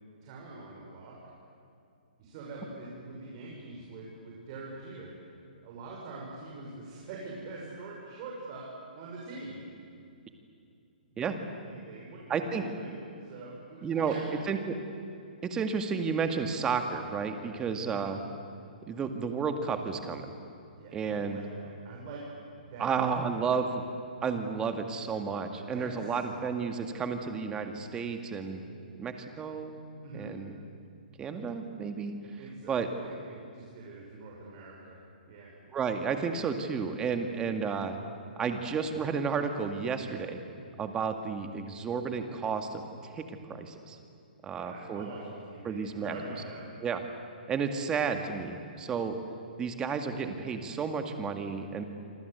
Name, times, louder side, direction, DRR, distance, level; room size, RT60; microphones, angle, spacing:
voice 1, 0.2-1.2 2.2-5.1 5.6-8.7 8.9-9.6 11.1-11.3 11.7-14.2 16.2-16.4 17.8-18.0 20.8-22.2 22.6-23.1 23.3-23.5 25.7-26.2 30.0-30.3 32.4-35.0 35.3-35.5 44.4-46.7, right 3 dB, 35° right, -3 dB, 6.3 m, -44 dB
voice 2, 12.3-12.6 13.8-14.2 14.5-14.8 15.4-18.2 18.9-20.3 20.9-21.4 22.8-23.8 24.2-28.6 29.0-29.8 30.1-30.6 31.2-32.1 32.7-32.9 35.7-38.0 38.4-40.4 40.8-44.0 44.4-45.1 45.6-46.2 46.8-47.0 47.5-49.2 49.6-51.8, right 5 dB, 15° right, 6 dB, 2.0 m, -32 dB
27.5 x 25.0 x 8.2 m, 2.5 s
hypercardioid pair, 150°, 5 cm